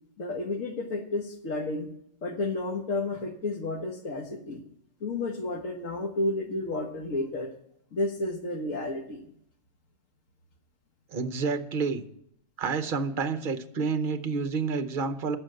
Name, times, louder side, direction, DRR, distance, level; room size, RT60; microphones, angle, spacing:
voice 1, 0.2-1.9 2.2-4.6 5.0-7.5 7.9-9.2, left 2 dB, 80° left, 4 dB, 1.6 m, -31 dB
voice 2, 11.1-12.0 12.6-15.4, right 4 dB, 45° right, 10 dB, 0.9 m, -29 dB
10.0 x 7.0 x 7.7 m, 0.72 s
omnidirectional pair, 1.3 m